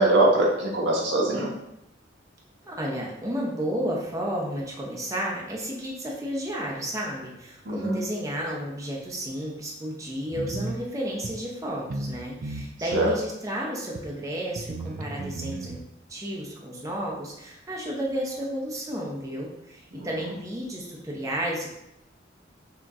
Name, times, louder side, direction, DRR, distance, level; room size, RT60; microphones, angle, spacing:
voice 1, 0.0-1.5 7.7-8.0 12.9-13.1 19.9-20.1, right 1 dB, 85° right, -2 dB, 1.1 m, -22 dB
voice 2, 2.6-15.8 16.1-21.7, equal, 20° right, -3 dB, 0.7 m, -32 dB
sound 1, 10.3-10.8 11.2-11.3 11.9-12.2 12.4-13.2 14.0-14.1 14.6-15.8, right 2 dB, 45° right, 0.4 m, -34 dB
5.9 x 2.9 x 2.5 m, 0.84 s
head